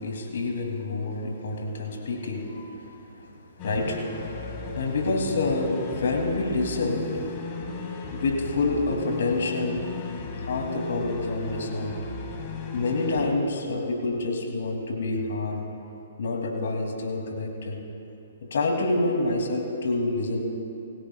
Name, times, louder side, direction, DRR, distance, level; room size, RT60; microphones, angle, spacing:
voice 1, 0.0-3.3 3.6-4.0 4.6-7.3 8.1-10.1 10.4-11.9 12.7-15.6 16.2-17.8 18.5-20.4, left 2 dB, 70° left, 1 dB, 2.7 m, -27 dB
sound 1, 3.6-13.3, left 4 dB, 35° left, 2.0 m, -36 dB
24.0 x 16.0 x 2.4 m, 2.8 s
hypercardioid pair, 135°, 0 cm